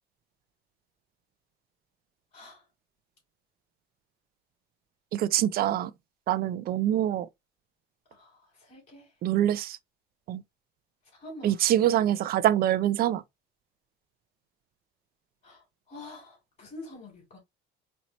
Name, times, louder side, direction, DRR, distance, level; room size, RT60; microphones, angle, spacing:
voice 1, 5.1-5.9 6.3-7.3 9.2-9.8 10.3-10.4 11.4-13.2, right 12 dB, 50° right, 0.4 m, -25 dB
voice 2, 8.7-9.1 11.2-11.5 15.4-15.6 15.9-17.4, left 2 dB, 40° left, 2.9 m, -45 dB
4.3 x 2.8 x 2.9 m
cardioid pair, 130°, 20 cm